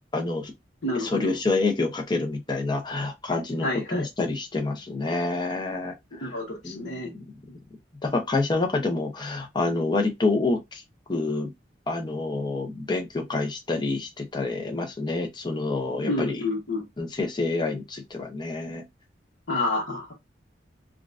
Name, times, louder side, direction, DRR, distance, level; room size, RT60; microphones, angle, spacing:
voice 1, 0.1-0.5 1.0-6.3 6.6-7.2 8.0-10.8 11.1-11.5 11.9-16.4 17.0-18.8, left 3 dB, 25° left, 0.7 m, -27 dB
voice 2, 0.8-1.4 3.6-4.1 6.2-7.1 16.0-16.8 19.5-20.1, left 2 dB, 65° left, 1.1 m, -29 dB
3.7 x 2.3 x 2.5 m
head